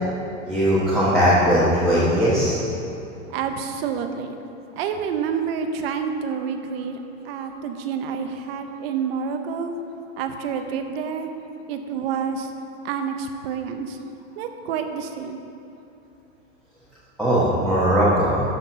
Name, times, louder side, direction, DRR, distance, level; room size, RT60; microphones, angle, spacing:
voice 1, 0.4-2.6 17.2-18.4, equal, ahead, -11 dB, 1.1 m, -19 dB
voice 2, 3.3-4.4 4.8-9.8 10.2-11.3 11.7-12.6 12.8-14.0 14.4-15.4, right 6 dB, 50° right, 6 dB, 0.9 m, -28 dB
12.0 x 4.4 x 5.5 m, 2.8 s
supercardioid pair, 165°, 38 cm